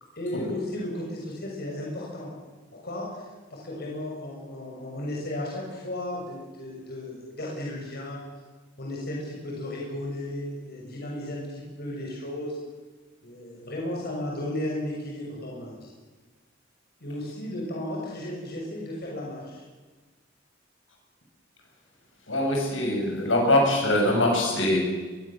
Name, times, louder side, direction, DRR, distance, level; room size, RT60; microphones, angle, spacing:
voice 1, 0.1-2.3 2.7-8.3 8.8-12.6 13.2-15.9 17.0-19.6, left 1 dB, 55° left, -2 dB, 6.7 m, -34 dB
voice 2, 22.3-24.8, left 1 dB, 70° left, 1 dB, 7.8 m, -23 dB
24.0 x 22.0 x 7.6 m, 1.3 s
head